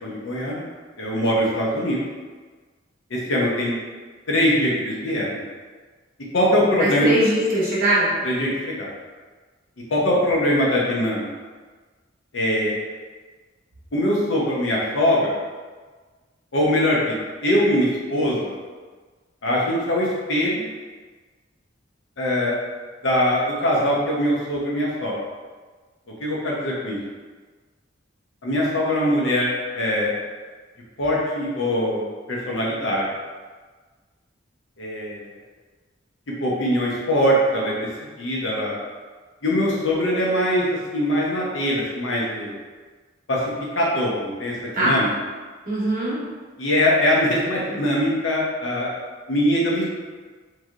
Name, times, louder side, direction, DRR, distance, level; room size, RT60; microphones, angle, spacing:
voice 1, 0.0-0.6 1.0-2.0 3.1-3.8 4.3-5.4 6.3-7.1 8.2-8.9 9.9-11.3 12.3-12.7 13.9-15.3 16.5-17.1 17.4-18.5 19.4-20.6 22.2-22.5 23.0-25.2 26.2-27.0 28.4-30.1 31.0-33.0 34.8-35.3 36.4-37.7 38.2-38.8 39.4-40.6 40.9-42.5 43.3-43.4 43.7-44.5 44.8-45.1 46.6-48.9 49.3-49.8, equal, 75° left, -4 dB, 0.7 m, -22 dB
voice 2, 6.8-8.2 44.7-45.0 45.7-46.2, right 1 dB, 50° right, -8 dB, 1.1 m, -21 dB
3.2 x 2.7 x 2.4 m, 1.4 s
head